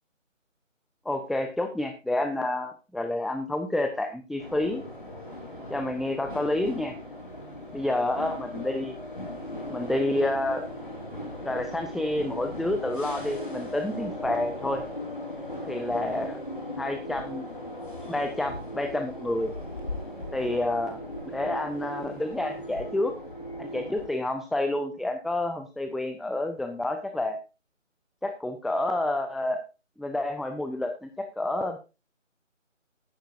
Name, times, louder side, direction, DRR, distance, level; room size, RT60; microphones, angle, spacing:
voice 1, 1.1-4.8 5.7-6.9 7.7-9.0 9.7-10.7 11.4-14.8 15.7-16.4 16.8-17.5 18.1-19.5 20.3-21.0 21.3-23.1 23.6-27.4 28.2-29.6 30.0-31.8, left 1 dB, ahead, 6 dB, 0.5 m, -29 dB
sound 1, 4.4-24.1, left 1 dB, 40° left, 3.2 m, -38 dB
15.0 x 11.5 x 2.5 m, 0.29 s
figure-of-eight pair, 175°, 39 cm